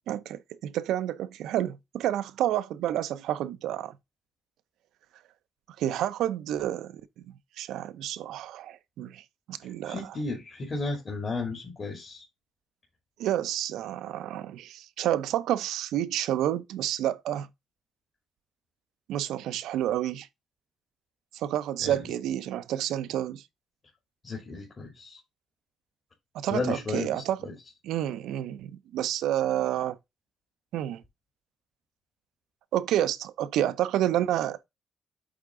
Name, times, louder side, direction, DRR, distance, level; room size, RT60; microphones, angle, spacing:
voice 1, 0.1-4.0 5.8-10.2 13.2-17.5 19.1-20.3 21.3-23.4 26.3-27.4 27.8-30.0 30.7-31.0 32.7-34.6, right 12 dB, 85° right, 0.6 m, -29 dB
voice 2, 9.8-12.2 21.8-22.0 24.2-25.2 26.5-27.1 27.4-27.5, left 3 dB, 35° left, 2.5 m, -33 dB
8.5 x 3.6 x 3.7 m
cardioid pair, 90°, 0 cm